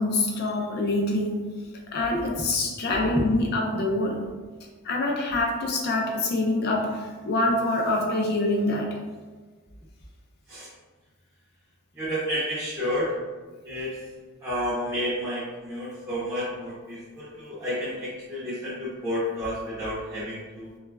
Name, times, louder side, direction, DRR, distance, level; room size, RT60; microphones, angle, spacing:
voice 1, 0.0-1.5 1.9-4.3 4.8-9.0, left 2 dB, 45° left, 0 dB, 0.4 m, -25 dB
voice 2, 12.0-13.1 13.6-13.9 14.4-20.7, equal, 15° right, -11 dB, 0.6 m, -30 dB
3.0 x 2.3 x 2.3 m, 1.3 s
head